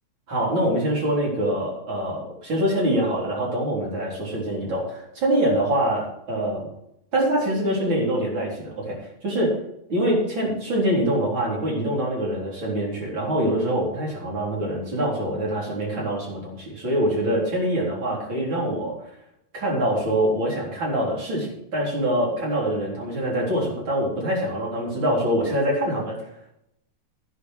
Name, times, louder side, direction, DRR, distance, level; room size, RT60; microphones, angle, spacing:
voice 1, 0.3-6.7 7.1-9.6 9.9-18.9 19.5-26.2, right 1 dB, 30° right, -4 dB, 4.2 m, -24 dB
11.5 x 9.7 x 4.8 m, 0.78 s
omnidirectional pair, 4.2 m